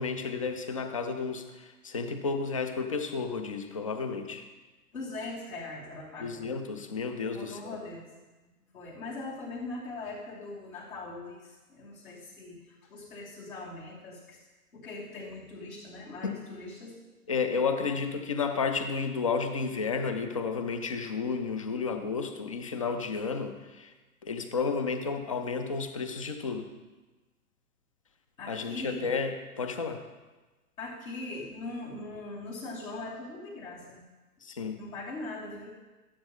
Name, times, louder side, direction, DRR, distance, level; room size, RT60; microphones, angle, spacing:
voice 1, 0.0-4.5 6.2-7.6 16.2-16.3 17.3-23.9 24.2-26.7 28.5-30.0 34.4-34.8, left 5 dB, 25° left, 8 dB, 0.4 m, -32 dB
voice 2, 4.9-6.5 7.3-8.1 8.4-14.4 14.7-17.0 17.9-18.0 28.4-29.1 30.8-34.0 34.8-35.7, left 2 dB, 60° left, -7 dB, 3.0 m, -41 dB
12.5 x 7.5 x 3.6 m, 1.2 s
figure-of-eight pair, 115°, 47 cm